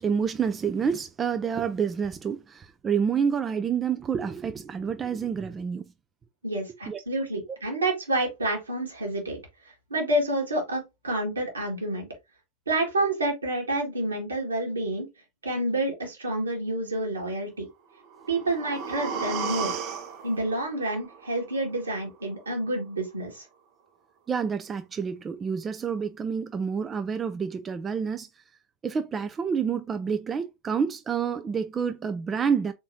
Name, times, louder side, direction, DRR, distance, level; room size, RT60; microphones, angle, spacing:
voice 1, 0.0-5.9 6.9-7.0 24.3-28.3 28.8-32.7, right 6 dB, 20° right, 0.4 m, -28 dB
voice 2, 6.4-9.4 9.9-12.1 12.7-15.1 15.4-17.7 18.3-19.8 20.2-23.4, right 1 dB, 75° right, 1.9 m, -28 dB
sound 1, 18.0-22.0 22.3-22.4, right 6 dB, 40° right, 0.8 m, -35 dB
4.1 x 3.6 x 2.9 m
figure-of-eight pair, 90°, 0 cm